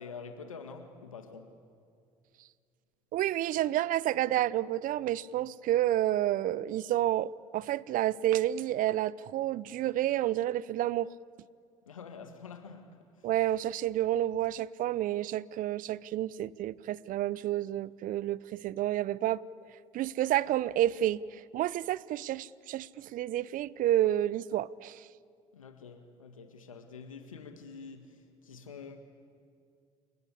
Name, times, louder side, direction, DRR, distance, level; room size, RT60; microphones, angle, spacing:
voice 1, 0.0-1.5 11.9-13.3 25.5-29.0, left 5 dB, 90° left, 1.6 m, -47 dB
voice 2, 3.1-11.1 13.2-19.4 19.9-25.1, right 13 dB, 55° right, 0.8 m, -30 dB
28.0 x 22.5 x 8.3 m
hypercardioid pair, 60°, 17 cm